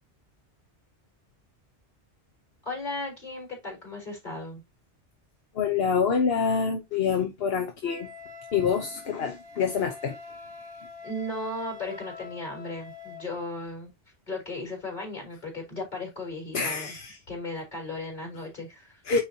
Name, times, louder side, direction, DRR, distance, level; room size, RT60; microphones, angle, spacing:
voice 1, 2.7-4.6 11.0-13.9 14.3-16.9 17.3-19.2, left 2 dB, 45° left, 3.7 m, -36 dB
voice 2, 5.5-8.1 8.5-10.2 16.5-17.2 19.1-19.2, left 6 dB, 60° left, 1.1 m, -26 dB
Wind instrument woodwind instrument, 7.8-13.3, left 5 dB, 25° right, 0.8 m, -44 dB
9.0 x 4.3 x 2.8 m
omnidirectional pair, 1.2 m